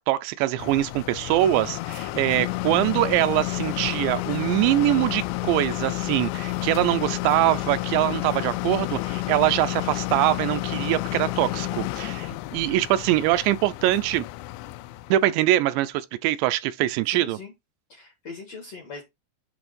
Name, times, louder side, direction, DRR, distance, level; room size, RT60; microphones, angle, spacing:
voice 1, 0.1-14.3 15.1-17.4, right 15 dB, 85° right, 2.8 m, -23 dB
sound 1, 0.6-15.3, left 19 dB, 85° left, 2.8 m, -30 dB
voice 2, 17.1-17.5 17.9-19.0, left 4 dB, 65° left, 1.7 m, -40 dB
8.1 x 3.3 x 5.2 m
omnidirectional pair, 5.0 m